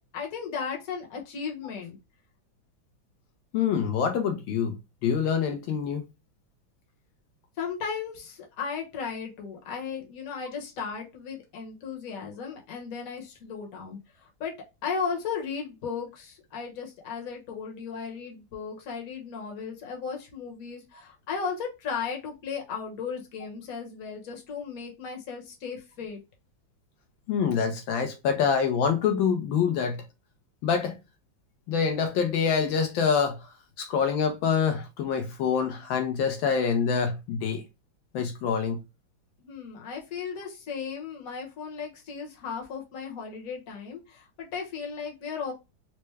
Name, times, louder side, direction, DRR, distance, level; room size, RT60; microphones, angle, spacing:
voice 1, 0.1-2.0 7.6-14.5 14.8-26.2 39.4-45.5, left 6 dB, 50° left, 1.3 m, -35 dB
voice 2, 3.5-4.8 5.0-6.0 27.3-30.0 30.6-31.0 31.7-33.5 33.8-37.6 38.1-38.8, left 6 dB, 80° left, 1.3 m, -26 dB
4.4 x 2.1 x 3.1 m
omnidirectional pair, 2.1 m